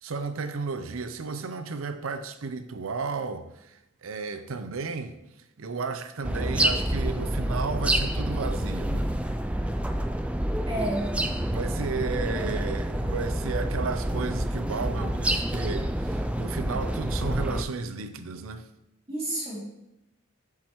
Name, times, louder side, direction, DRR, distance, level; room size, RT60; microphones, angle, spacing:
voice 1, 0.0-5.2 5.6-9.1 11.1-18.7, right 4 dB, 80° right, 0.6 m, -33 dB
sound 1, 6.2-17.6, right 1 dB, 5° right, 0.3 m, -28 dB
voice 2, 10.6-11.1 19.1-19.6, right 1 dB, 30° right, 2.7 m, -30 dB
7.5 x 7.5 x 3.1 m
head